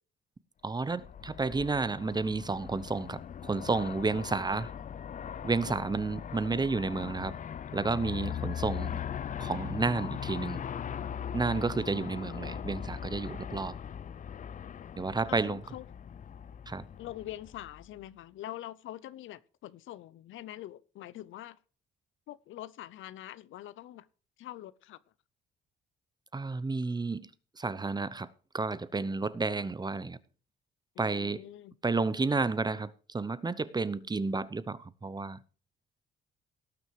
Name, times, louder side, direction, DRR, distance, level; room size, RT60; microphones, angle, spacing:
voice 1, 0.6-4.7 5.4-7.4 7.7-9.0 9.4-10.6 11.3-13.8 15.0-15.6 16.7-16.9 26.3-27.3 27.6-30.2 31.0-31.4 31.8-35.4, right 3 dB, 20° right, 0.8 m, -31 dB
Aircraft, 0.8-18.1, left 8 dB, 40° left, 0.5 m, -40 dB
voice 2, 15.3-15.8 17.0-21.6 22.3-24.1 24.4-25.0 30.9-31.8, left 13 dB, 80° left, 0.7 m, -44 dB
17.5 x 6.3 x 4.9 m
cardioid pair, 90°, 20 cm